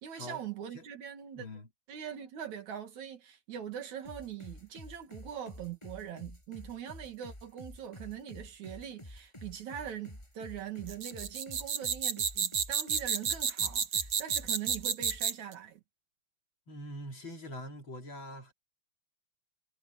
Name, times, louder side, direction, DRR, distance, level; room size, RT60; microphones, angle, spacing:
voice 1, 0.0-1.5 1.9-15.8, right 9 dB, 70° right, 3.2 m, -42 dB
voice 2, 1.4-1.7 16.7-18.5, equal, 40° left, 3.8 m, -43 dB
sound 1, 4.0-15.3, left 1 dB, 10° left, 6.1 m, -49 dB
sound 2, 10.9-15.5, right 7 dB, 50° right, 2.2 m, -31 dB
omnidirectional pair, 3.5 m